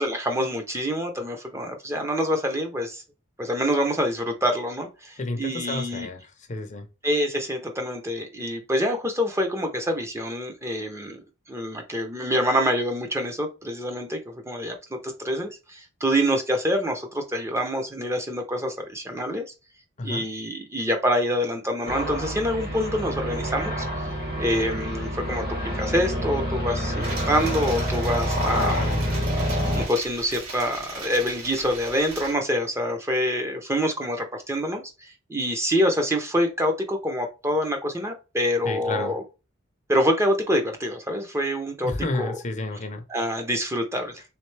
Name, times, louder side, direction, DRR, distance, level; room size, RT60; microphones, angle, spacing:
voice 1, 0.0-3.0 3.4-6.1 7.0-11.2 11.5-19.4 20.0-24.1 24.4-25.4 25.8-28.8 29.4-39.2 39.9-41.9 42.2-42.3 43.1-44.2, equal, 15° right, 0.6 m, -26 dB
voice 2, 5.2-6.9 20.0-20.3 28.4-29.1 38.6-39.2 41.8-43.0, left 2 dB, 35° left, 0.6 m, -31 dB
sound 1, 21.9-29.9, equal, 50° right, 1.4 m, -27 dB
sound 2, 27.0-32.3, right 3 dB, 75° right, 1.8 m, -38 dB
3.6 x 3.2 x 3.2 m
head